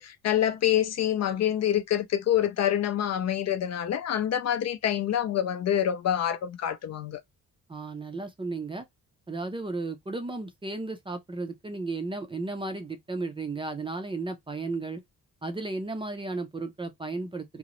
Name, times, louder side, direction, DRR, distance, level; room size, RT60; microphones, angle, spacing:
voice 1, 0.0-7.2, left 10 dB, 55° left, 0.5 m, -26 dB
voice 2, 7.7-8.8 9.3-15.0 15.4-17.6, right 3 dB, 15° right, 0.4 m, -34 dB
3.7 x 2.0 x 3.0 m
cardioid pair, 145°, 33 cm